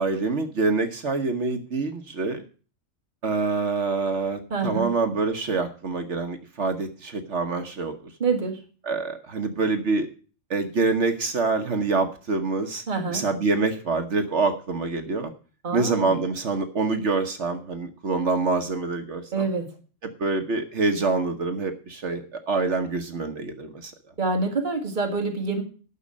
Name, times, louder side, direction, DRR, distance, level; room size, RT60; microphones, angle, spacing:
voice 1, 0.0-2.4 3.2-8.1 8.8-10.1 10.5-12.8 13.1-15.3 15.7-19.5 20.0-23.9, right 3 dB, 65° right, 7 dB, 1.4 m, -26 dB
voice 2, 4.5-4.9 8.2-8.6 12.9-13.2 15.6-16.2 19.3-19.7 24.2-25.6, right 4 dB, 40° right, 2 dB, 2.0 m, -26 dB
11.0 x 6.3 x 8.4 m, 0.39 s
omnidirectional pair, 1.3 m